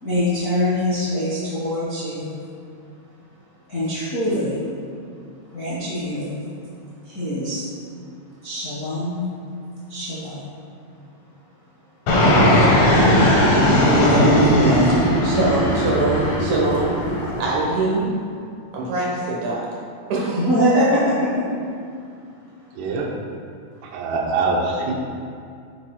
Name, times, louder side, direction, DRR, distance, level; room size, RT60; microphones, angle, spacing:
voice 1, 0.0-2.3 3.7-4.6 5.5-6.4 7.0-7.7 8.4-9.3 9.9-10.4 20.4-21.6, equal, 80° left, -10 dB, 0.7 m, -23 dB
Fixed-wing aircraft airplane, 12.1-17.5, left 1 dB, 65° left, 1.6 m, -17 dB
voice 2, 13.8-17.0 17.4-18.1 18.7-19.7 20.1-20.5, right 2 dB, 65° right, -4 dB, 2.0 m, -22 dB
voice 3, 22.8-23.1 23.8-24.9, right 3 dB, 85° right, -1 dB, 2.9 m, -23 dB
8.8 x 8.7 x 2.3 m, 2.3 s
omnidirectional pair, 4.6 m